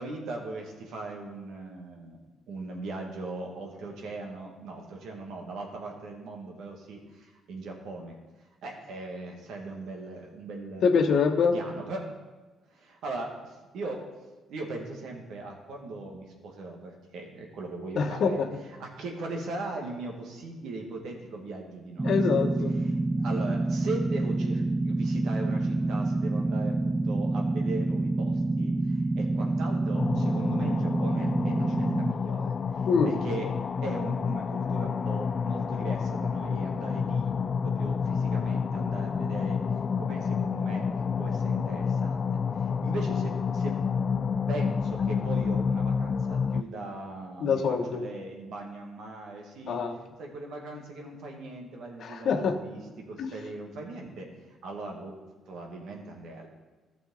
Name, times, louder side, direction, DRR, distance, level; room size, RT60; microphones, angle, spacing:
voice 1, 0.0-2.2 2.5-8.2 8.6-11.0 11.5-12.1 12.7-14.0 14.5-18.4 18.8-22.1 22.8-22.9 23.2-28.7 29.2-33.5 33.8-37.3 37.6-39.6 40.0-40.8 41.2-42.4 42.8-43.8 44.5-49.8 50.2-54.3 54.6-55.1 55.5-56.5, right 2 dB, 70° right, 1 dB, 1.9 m, -39 dB
voice 2, 10.8-11.5 18.0-18.5 22.0-22.7 32.9-33.2 47.4-48.1 49.7-50.0 52.0-52.6 53.2-53.3, left 5 dB, 65° left, 5 dB, 1.2 m, -25 dB
sound 1, 22.0-32.1, right 2 dB, 20° right, 0.5 m, -27 dB
sound 2, 29.9-46.6, left 6 dB, 45° left, 0.3 m, -29 dB
14.5 x 6.2 x 3.9 m, 1.2 s
hypercardioid pair, 55°, 0 cm